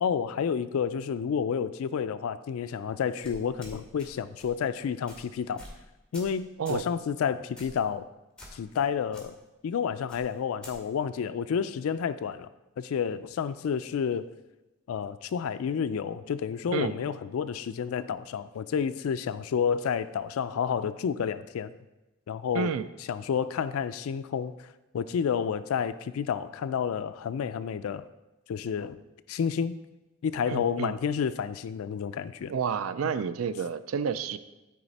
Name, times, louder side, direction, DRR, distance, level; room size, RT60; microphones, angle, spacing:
voice 1, 0.0-5.6 6.1-8.1 8.5-9.4 9.6-12.5 12.8-14.3 14.9-21.7 22.3-22.8 23.1-24.6 24.9-28.1 28.5-29.0 29.3-29.8 30.2-32.5, left 7 dB, 80° left, 13 dB, 0.3 m, -30 dB
sound 1, 3.2-4.1 4.4-4.6 5.1-5.2 5.6-5.8 6.1-6.4 6.7-6.9 7.6-7.8 8.4-8.8 9.1-9.2 10.1-10.8, left 1 dB, 5° left, 2.4 m, -47 dB
voice 2, 22.5-22.9 30.5-31.0 32.5-34.4, right 6 dB, 80° right, 13 dB, 0.4 m, -30 dB
13.0 x 4.9 x 4.1 m, 1.1 s
head